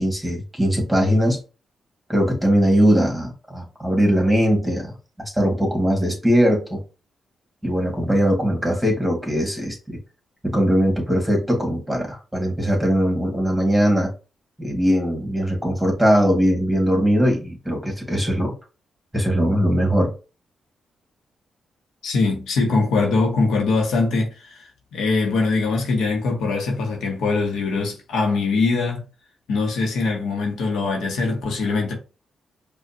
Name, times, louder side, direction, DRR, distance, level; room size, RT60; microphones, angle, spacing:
voice 1, 0.0-1.4 2.1-6.8 7.6-10.0 10.4-14.1 14.6-18.5 19.1-20.1, equal, 5° right, 1.7 m, -20 dB
voice 2, 22.0-29.0 29.5-31.9, left 3 dB, 85° left, 1.0 m, -22 dB
5.0 x 2.4 x 2.7 m
cardioid pair, 65°, 0 cm